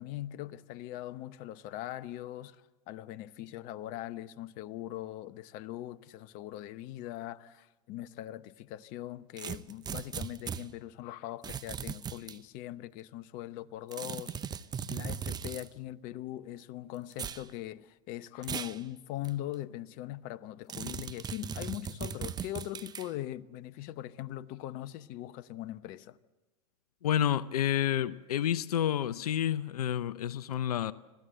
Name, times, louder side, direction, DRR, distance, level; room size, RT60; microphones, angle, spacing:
voice 1, 0.0-14.6 14.9-26.2, left 14 dB, 45° left, 0.9 m, -41 dB
sound 1, 9.4-10.6 11.4-12.4 13.9-15.7 17.1-17.4 18.4-18.8 19.2-19.3 20.7-23.1, right 7 dB, 20° right, 0.7 m, -38 dB
voice 2, 27.0-30.9, left 10 dB, 80° left, 0.6 m, -29 dB
25.5 x 16.0 x 7.8 m
hypercardioid pair, 105°, 19 cm